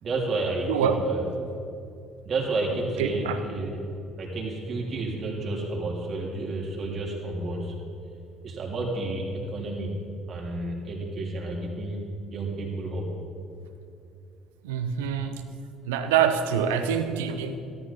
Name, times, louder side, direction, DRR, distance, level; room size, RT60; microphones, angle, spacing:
voice 1, 0.0-1.2 2.2-3.8 4.2-7.7 8.4-10.0 10.3-13.1, right 2 dB, 50° right, -2 dB, 3.4 m, -31 dB
voice 2, 0.7-1.0 3.0-3.4 14.6-15.3 15.8-17.6, right 8 dB, 85° right, 8 dB, 0.8 m, -25 dB
14.0 x 13.0 x 4.2 m, 2.6 s
hypercardioid pair, 65°, 0 cm